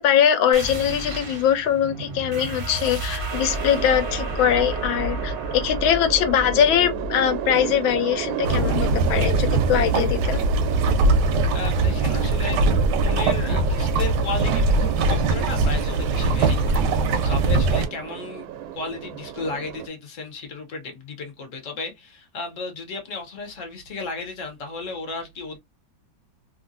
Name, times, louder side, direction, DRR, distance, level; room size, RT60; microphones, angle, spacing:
voice 1, 0.0-10.4, left 9 dB, 85° left, 1.4 m, -22 dB
sound 1, 0.5-9.7, right 2 dB, 45° right, 0.7 m, -32 dB
sound 2, 3.3-19.9, right 10 dB, 90° right, 1.4 m, -33 dB
sound 3, 8.4-17.9, right 3 dB, 70° right, 1.1 m, -21 dB
voice 2, 11.5-12.6 13.0-18.5 18.7-25.6, left 3 dB, 55° left, 0.9 m, -34 dB
3.1 x 2.5 x 2.5 m
omnidirectional pair, 2.1 m